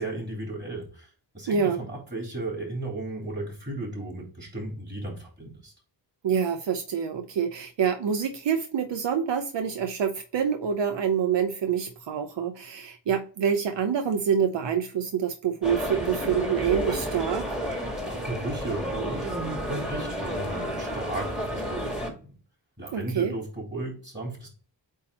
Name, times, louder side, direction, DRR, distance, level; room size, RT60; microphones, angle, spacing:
voice 1, 0.0-5.7 17.8-22.3 22.8-24.5, right 2 dB, 25° right, 3.4 m, -35 dB
voice 2, 1.5-1.8 6.2-17.5 22.9-23.3, right 7 dB, 75° right, 0.7 m, -26 dB
sound 1, 15.6-22.1, equal, ahead, 1.7 m, -31 dB
8.4 x 2.9 x 4.2 m
wide cardioid pair, 125°, 44 cm